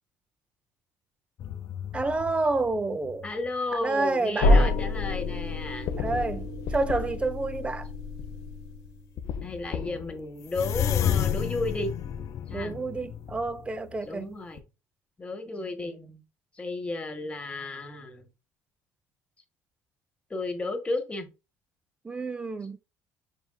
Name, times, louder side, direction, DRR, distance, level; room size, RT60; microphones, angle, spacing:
sound 1, 1.4-3.5 4.1-4.7 5.2-5.3 5.9-7.4 8.2-8.4 8.8-8.9 9.2-14.2 14.6-14.7, left 9 dB, 55° left, 0.5 m, -32 dB
voice 1, 1.9-3.3 3.7-4.8 6.0-7.9 12.5-14.4 22.0-22.8, right 3 dB, 20° right, 0.6 m, -29 dB
voice 2, 3.2-5.9 9.4-11.9 12.5-12.7 14.0-14.6 15.2-16.2 16.6-18.2 20.3-21.3, left 2 dB, 20° left, 1.2 m, -33 dB
sound 2, 4.4-9.1, left 2 dB, 80° left, 0.8 m, -27 dB
5.7 x 3.4 x 2.2 m
cardioid pair, 100°, 6 cm